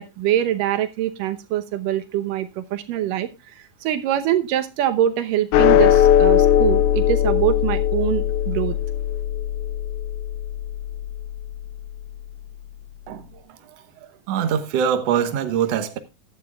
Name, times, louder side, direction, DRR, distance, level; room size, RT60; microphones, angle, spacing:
voice 1, 0.0-3.3 3.6-8.8, right 11 dB, 85° right, 2.7 m, -24 dB
sound 1, 5.5-12.1, left 10 dB, 75° left, 2.1 m, -19 dB
voice 2, 13.1-13.8 14.3-16.0, right 8 dB, 60° right, 2.0 m, -23 dB
15.0 x 11.0 x 2.4 m
omnidirectional pair, 3.7 m